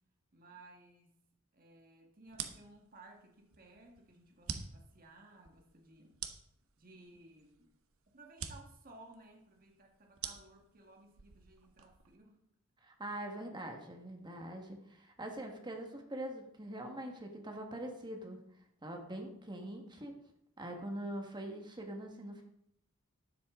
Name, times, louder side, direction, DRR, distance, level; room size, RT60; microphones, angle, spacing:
voice 1, 0.3-1.1 1.5-6.2 6.8-7.7 8.1-12.4, right 2 dB, 45° right, 1 dB, 1.7 m, -58 dB
sound 1, 2.3-12.2, right 7 dB, 85° right, 1.1 m, -48 dB
voice 2, 12.8-18.4 18.8-20.1 20.6-22.4, right 1 dB, 20° right, 3 dB, 1.5 m, -43 dB
12.5 x 9.9 x 3.8 m, 0.75 s
head